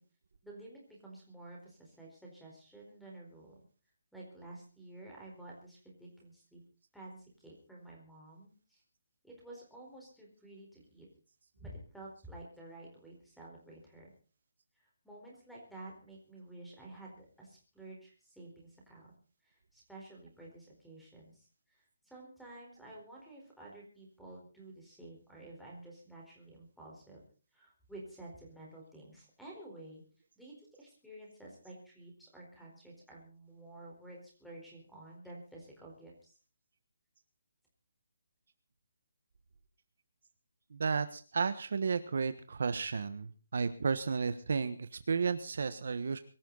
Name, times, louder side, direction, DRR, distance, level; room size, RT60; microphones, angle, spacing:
voice 1, 0.4-3.6 4.1-6.6 6.9-8.8 9.2-11.1 11.6-14.1 14.8-19.1 19.4-27.2 27.5-30.0 30.4-36.4, right 2 dB, ahead, -3 dB, 4.4 m, -51 dB
voice 2, 40.7-46.2, right 5 dB, 50° right, 11 dB, 1.3 m, -33 dB
23.5 x 14.0 x 4.0 m, 0.38 s
hypercardioid pair, 180°, 0 cm